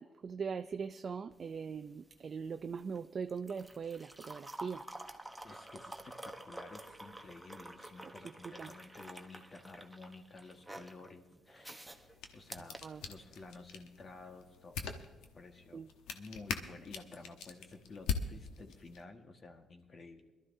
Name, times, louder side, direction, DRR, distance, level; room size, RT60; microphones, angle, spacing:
voice 1, 0.0-4.8 8.0-8.1 8.4-8.7 12.8-13.0 15.7-15.9, right 6 dB, 45° right, 8 dB, 0.4 m, -41 dB
sound 1, 1.3-13.6 14.9-15.0, right 1 dB, 5° right, 1.0 m, -50 dB
voice 2, 5.4-11.9 12.3-14.9 15.3-15.8 16.1-20.3, left 3 dB, 40° left, 5 dB, 1.5 m, -52 dB
sound 2, 11.9-19.0, left 6 dB, 90° left, 1.0 m, -43 dB
22.5 x 12.5 x 2.7 m, 1.2 s
cardioid pair, 90°, 0 cm